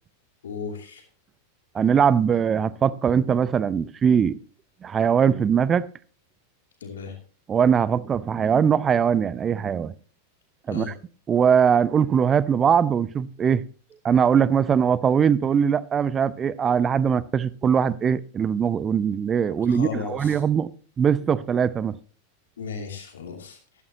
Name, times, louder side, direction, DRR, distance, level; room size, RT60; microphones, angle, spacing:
voice 1, 0.4-1.0 6.8-7.1 10.7-10.9 19.6-20.4 22.6-23.6, left 5 dB, 65° left, 2.7 m, -35 dB
voice 2, 1.7-4.4 4.8-5.9 7.5-9.9 10.7-10.9 11.3-13.6 14.0-20.7 21.0-22.0, right 7 dB, 20° right, 0.5 m, -21 dB
14.0 x 13.0 x 2.8 m
figure-of-eight pair, 90°, 0 cm